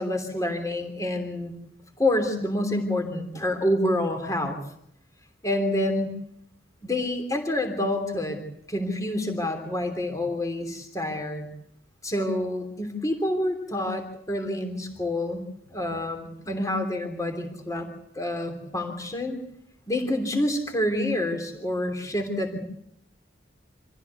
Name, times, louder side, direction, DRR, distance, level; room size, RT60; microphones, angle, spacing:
voice 1, 0.0-1.5 2.0-4.6 5.4-6.1 6.8-8.4 8.7-11.5 12.0-15.4 15.7-17.9 18.1-19.4 19.9-22.6, left 1 dB, 15° left, 5 dB, 3.1 m, -27 dB
26.0 x 15.5 x 8.3 m, 0.74 s
head